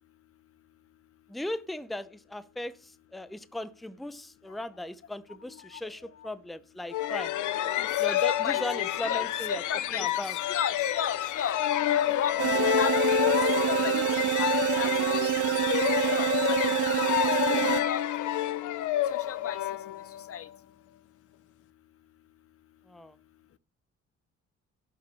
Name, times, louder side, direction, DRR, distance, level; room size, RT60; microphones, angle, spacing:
voice 1, 1.3-7.3 8.0-9.6 9.9-10.3 22.9-23.1, left 1 dB, ahead, 0.7 m, -37 dB
voice 2, 5.5-6.3 7.8-8.6 9.0-12.9 13.6-15.5 16.0-18.3 19.1-19.6 20.3-20.5, left 8 dB, 50° left, 0.8 m, -36 dB
sound 1, 6.9-20.4, left 12 dB, 80° left, 0.8 m, -28 dB
sound 2, 12.4-17.8, right 13 dB, 50° right, 0.4 m, -27 dB
11.5 x 5.8 x 6.3 m
cardioid pair, 90°, 30 cm